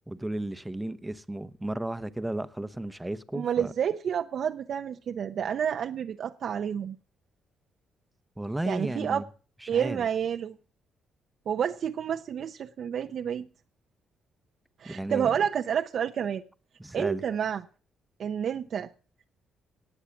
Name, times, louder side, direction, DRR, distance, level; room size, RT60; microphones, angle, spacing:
voice 1, 0.1-3.7 8.4-9.2 9.6-10.1 14.9-15.3 16.8-17.2, right 1 dB, 10° right, 0.9 m, -34 dB
voice 2, 3.3-7.0 8.7-9.2 9.7-10.6 11.5-13.5 14.8-16.4 16.9-17.6 18.2-18.9, right 8 dB, 60° right, 0.7 m, -29 dB
18.5 x 7.3 x 7.0 m
cardioid pair, 90°, 0 cm